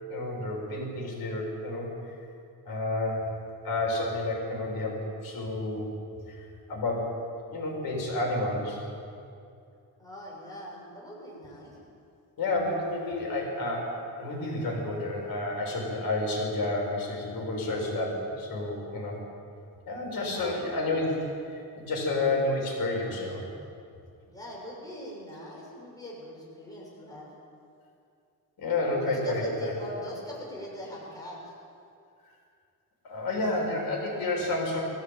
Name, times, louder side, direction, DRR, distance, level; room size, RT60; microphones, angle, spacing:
voice 1, 0.1-1.9 2.6-3.3 3.6-5.9 6.3-6.4 6.7-7.1 7.5-8.8 12.4-19.2 19.9-21.1 21.5-23.4 28.6-29.7 33.1-34.8, left 2 dB, 70° left, -1 dB, 6.7 m, -30 dB
voice 2, 10.0-11.8 20.2-20.7 24.3-27.3 28.9-31.4, equal, 10° left, -4 dB, 6.5 m, -42 dB
24.0 x 15.0 x 9.1 m, 2.4 s
wide cardioid pair, 170°, 37 cm